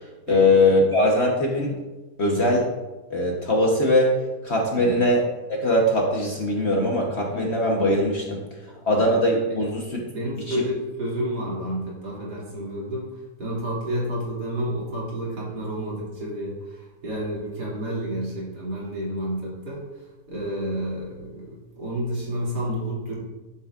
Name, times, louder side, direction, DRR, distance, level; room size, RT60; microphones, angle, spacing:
voice 1, 0.3-1.8 2.2-2.7 3.1-4.1 4.4-5.2 5.5-8.4 8.8-10.0 10.5-10.6, left 1 dB, 45° left, -1 dB, 1.1 m, -21 dB
voice 2, 4.8-5.1 7.3-7.6 8.9-9.0 9.5-9.7 10.1-19.8 20.3-23.1, equal, 65° right, -6 dB, 3.0 m, -30 dB
11.0 x 7.1 x 2.4 m, 1.2 s
omnidirectional pair, 1.9 m